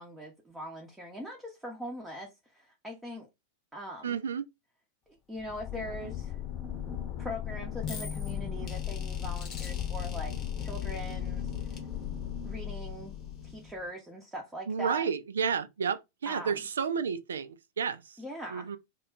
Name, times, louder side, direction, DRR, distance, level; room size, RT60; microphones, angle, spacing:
voice 1, 0.0-3.3 3.7-4.2 5.1-6.4 7.2-11.5 12.4-13.2 13.4-15.1 16.3-16.7 18.2-18.7, equal, 5° right, 0.7 m, -41 dB
voice 2, 4.0-4.5 14.7-18.2 18.5-18.8, right 6 dB, 65° right, 0.3 m, -31 dB
sound 1, 5.4-13.9, left 9 dB, 35° left, 0.8 m, -36 dB
2.2 x 2.1 x 3.7 m
figure-of-eight pair, 90°, 0 cm